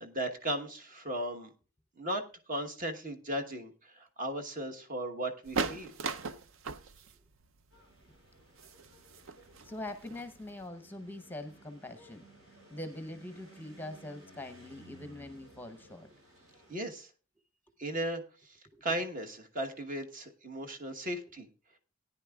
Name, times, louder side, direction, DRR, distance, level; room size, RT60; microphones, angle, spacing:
voice 1, 0.0-1.5 2.0-2.2 2.5-5.9 16.7-17.1 17.8-21.5, right 1 dB, 40° right, 5 dB, 1.2 m, -36 dB
sound 1, 5.4-10.7, right 4 dB, 65° right, 0.6 m, -38 dB
sound 2, 7.7-16.9, right 1 dB, 85° right, 7.1 m, -58 dB
voice 2, 9.6-12.3 12.7-16.1 17.9-18.0 18.7-18.8, left 1 dB, 10° left, 9 dB, 0.8 m, -43 dB
18.5 x 9.9 x 2.3 m, 0.36 s
head